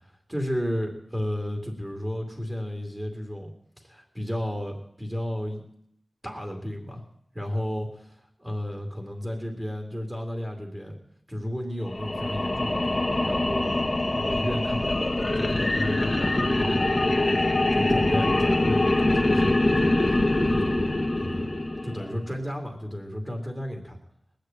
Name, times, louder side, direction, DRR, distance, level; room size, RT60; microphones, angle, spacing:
voice 1, 0.3-3.5 3.8-5.6 6.2-7.0 7.3-7.9 8.4-10.9 11.3-13.8 14.0-15.0 15.3-16.8 17.7-20.2 20.5-21.5 21.8-24.0, equal, 15° right, 2 dB, 2.6 m, -33 dB
sound 1, 11.9-22.2, left 2 dB, 35° left, 1.6 m, -24 dB
19.5 x 6.7 x 8.9 m, 0.72 s
wide cardioid pair, 80°, 0 cm